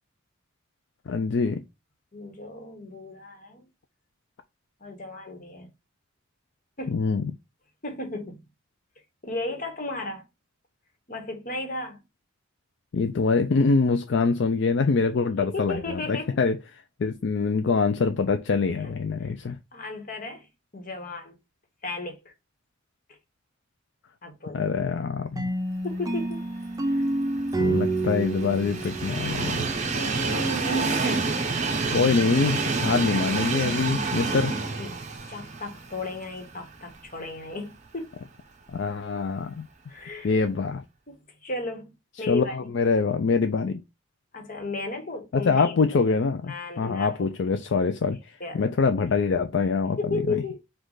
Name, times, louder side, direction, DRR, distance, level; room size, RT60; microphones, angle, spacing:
voice 1, 1.1-1.6 6.9-7.2 12.9-19.6 24.5-25.4 27.6-29.6 31.9-34.5 38.7-39.7 40.2-40.8 42.3-43.8 45.3-50.4, left 4 dB, 60° left, 0.4 m, -24 dB
voice 2, 2.1-3.7 4.8-5.7 6.8-7.0 7.8-8.4 9.2-10.2 11.1-12.0 15.4-16.4 19.7-20.5 20.7-21.4 21.8-22.2 24.2-24.7 25.8-26.4 29.9-31.4 34.8-34.9 35.3-38.1 39.9-40.3 41.1-41.9 42.2-42.6 44.3-45.7 46.4-47.6 48.4-48.7 50.0-50.6, left 2 dB, 40° left, 1.2 m, -34 dB
sound 1, 25.4-30.2, right 2 dB, 15° right, 0.4 m, -29 dB
Train, 26.9-37.1 37.5-37.6 38.7-38.8, right 4 dB, 35° right, 0.8 m, -29 dB
5.1 x 2.4 x 3.8 m
head